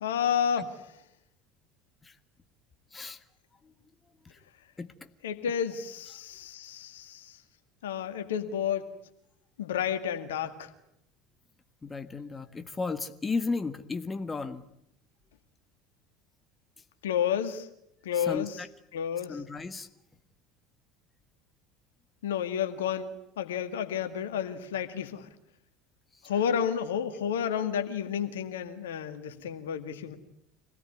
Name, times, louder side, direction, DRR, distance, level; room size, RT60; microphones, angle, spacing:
voice 1, 0.0-0.8 5.2-7.4 7.8-8.8 9.6-10.7 17.0-17.7 18.0-18.5 18.9-19.4 22.2-25.3 26.2-30.2, left 8 dB, 70° left, 9 dB, 2.0 m, -31 dB
voice 2, 2.9-3.2 3.6-3.7 4.2-4.4 4.8-5.1 11.8-14.7 18.1-18.7 19.3-19.9 26.1-26.2, left 4 dB, 20° left, 9 dB, 1.6 m, -34 dB
26.0 x 18.0 x 9.6 m, 0.78 s
figure-of-eight pair, 70°, 0 cm